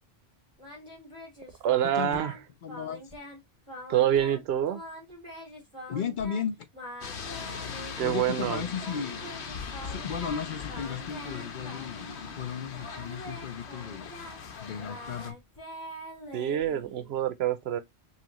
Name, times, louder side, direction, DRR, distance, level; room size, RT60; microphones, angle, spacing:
Singing, 0.6-2.4 2.7-3.4 3.7-4.4 4.7-6.4 6.7-8.2 8.8-12.4 12.7-17.1, equal, 20° left, 2.6 m, -44 dB
voice 1, 1.6-2.3 3.9-4.8 8.0-8.6 16.3-17.8, right 11 dB, 75° right, 0.8 m, -26 dB
voice 2, 2.6-3.1 5.9-6.7 8.0-9.2 9.8-14.1 14.6-15.4, left 7 dB, 55° left, 0.6 m, -35 dB
sound 1, 7.0-15.3, left 6 dB, 80° left, 1.1 m, -40 dB
5.6 x 2.5 x 2.9 m
omnidirectional pair, 1.1 m